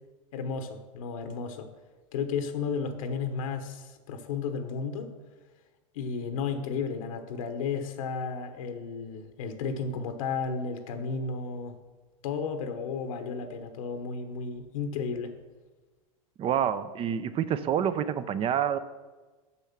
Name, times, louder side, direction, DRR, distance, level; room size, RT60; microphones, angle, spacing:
voice 1, 0.3-1.7 2.1-5.1 5.9-11.8 12.2-15.3, left 5 dB, 70° left, 7 dB, 1.0 m, -33 dB
voice 2, 16.4-18.8, right 9 dB, 30° right, 13 dB, 0.6 m, -27 dB
7.0 x 6.3 x 5.8 m, 1.3 s
hypercardioid pair, 105°, 18 cm